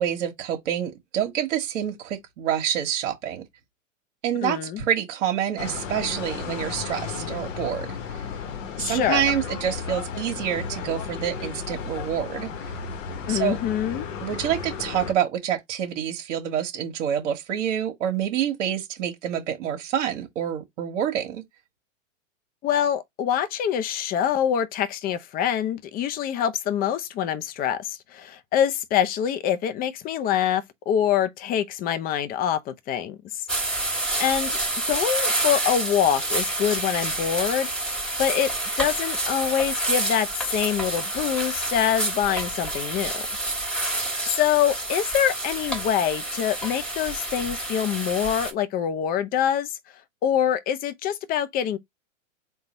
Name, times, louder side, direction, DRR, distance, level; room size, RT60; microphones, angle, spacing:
voice 1, 0.0-3.4 4.2-8.2 8.8-12.7 13.3-13.6 14.2-21.4, right 10 dB, 65° right, 1.2 m, -27 dB
voice 2, 4.4-4.8 8.8-9.2 13.3-14.1 22.6-33.5 34.2-34.6 34.9-37.7 38.2-38.5 38.8-43.2 44.3-49.8 50.2-51.8, left 9 dB, 25° left, 0.5 m, -25 dB
sound 1, 5.6-15.1, left 6 dB, 70° left, 1.1 m, -34 dB
sound 2, 33.5-48.5, right 2 dB, ahead, 1.5 m, -28 dB
3.9 x 2.4 x 4.0 m
hypercardioid pair, 115°, 39 cm